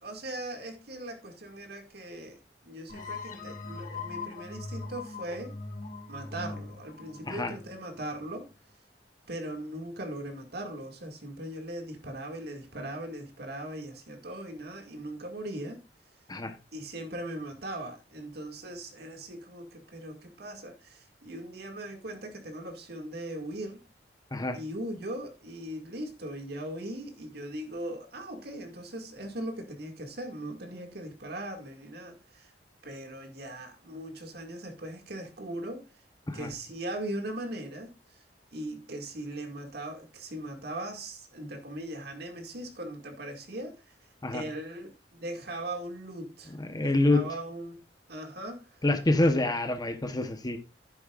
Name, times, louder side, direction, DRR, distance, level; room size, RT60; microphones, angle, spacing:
voice 1, 0.0-5.5 6.1-8.5 9.3-15.8 16.7-23.8 24.5-32.5 32.8-35.9 36.3-38.2 38.5-44.0 44.3-47.8 48.1-48.8 49.2-49.4, right 1 dB, 65° right, 2.2 m, -39 dB
sound 1, 2.9-8.4, left 3 dB, 50° left, 2.2 m, -41 dB
voice 2, 46.6-47.2 48.8-50.6, left 2 dB, 25° left, 1.0 m, -26 dB
12.0 x 9.8 x 2.5 m
head